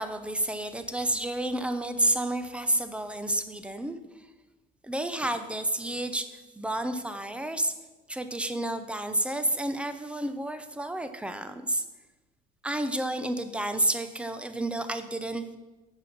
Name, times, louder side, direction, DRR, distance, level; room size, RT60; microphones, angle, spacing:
voice 1, 0.0-4.0 4.8-7.7 8.1-11.8 12.6-15.6, right 1 dB, 5° right, 9 dB, 0.7 m, -30 dB
7.5 x 6.3 x 6.0 m, 1.2 s
cardioid pair, 110°, 17 cm